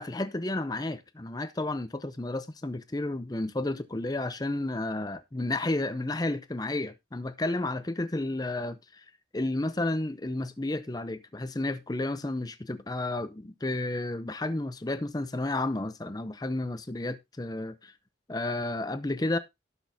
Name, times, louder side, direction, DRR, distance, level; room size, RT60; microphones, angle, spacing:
voice 1, 0.0-9.0 9.3-17.9 18.3-19.4, left 2 dB, 20° left, 0.6 m, -32 dB
18.0 x 6.2 x 2.7 m
head